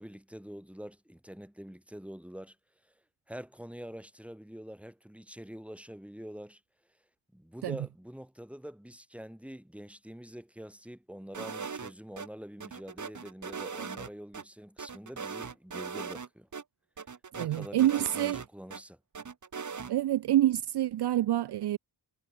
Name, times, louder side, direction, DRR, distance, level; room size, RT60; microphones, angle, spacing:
voice 1, 0.0-2.6 2.8-2.9 3.3-6.6 7.3-16.5 17.3-19.0, equal, 5° right, 4.2 m, -45 dB
sound 1, 11.3-12.3 12.6-14.4 14.8-16.3 16.5-16.6 17.0-18.8 19.1-19.9, right 5 dB, 45° right, 1.5 m, -39 dB
voice 2, 17.3-18.4 19.9-21.8, right 13 dB, 70° right, 0.5 m, -27 dB
wide cardioid pair, 100°, 41 cm